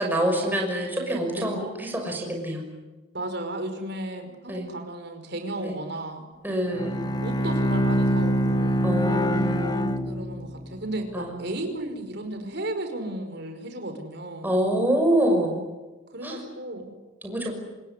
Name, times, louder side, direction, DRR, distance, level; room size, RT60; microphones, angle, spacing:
voice 1, 0.0-2.7 4.5-4.7 5.6-5.7 6.4-7.0 8.8-9.8 11.1-11.4 14.4-15.6 16.2-16.4 17.2-17.5, right 1 dB, 10° right, 1 dB, 6.2 m, -26 dB
voice 2, 3.1-6.2 7.2-8.9 10.1-14.6 16.1-16.9, right 1 dB, 55° right, 6 dB, 5.3 m, -34 dB
Bowed string instrument, 6.7-10.8, equal, 20° left, 1.5 m, -24 dB
27.0 x 20.0 x 9.8 m, 1.2 s
head